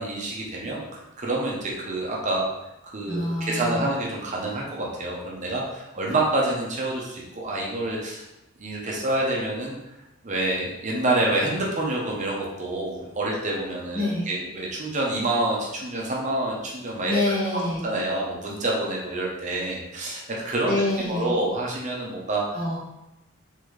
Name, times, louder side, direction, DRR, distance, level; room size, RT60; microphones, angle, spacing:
voice 1, 0.0-2.5 2.8-8.2 8.6-9.8 10.2-17.2 17.8-20.8 21.0-22.6, right 2 dB, 40° right, -3 dB, 0.8 m, -27 dB
voice 2, 3.1-3.9 13.9-14.3 17.1-17.9 20.6-21.3 22.5-22.8, left 1 dB, 45° left, -6 dB, 1.5 m, -26 dB
4.0 x 3.7 x 3.2 m, 0.95 s
head